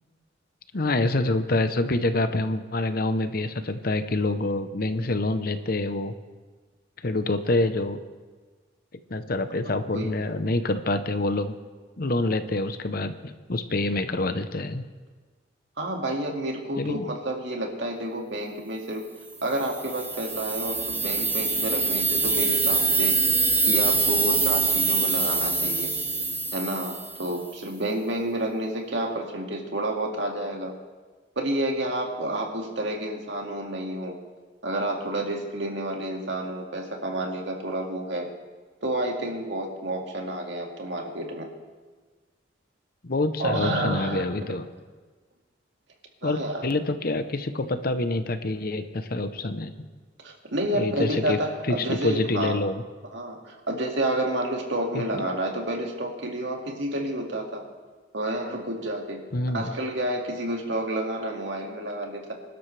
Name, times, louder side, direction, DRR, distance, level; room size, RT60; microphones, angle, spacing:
voice 1, 0.7-6.1 7.0-8.0 9.1-11.5 12.0-14.8 16.8-17.1 43.0-44.7 46.2-49.7 50.7-51.4 51.7-52.8 54.9-55.2 59.3-59.7, left 2 dB, 50° left, 10 dB, 0.8 m, -26 dB
voice 2, 9.6-10.2 15.8-19.1 19.4-23.2 23.6-25.9 26.5-30.7 31.4-34.2 34.6-38.3 38.8-41.5 43.4-44.5 46.2-46.7 50.2-52.6 53.1-57.6 58.1-59.2 59.5-62.3, right 1 dB, 70° right, 1 dB, 2.3 m, -30 dB
sound 1, 19.5-27.4, right 3 dB, 10° right, 1.1 m, -24 dB
25.5 x 12.0 x 3.4 m, 1.4 s
head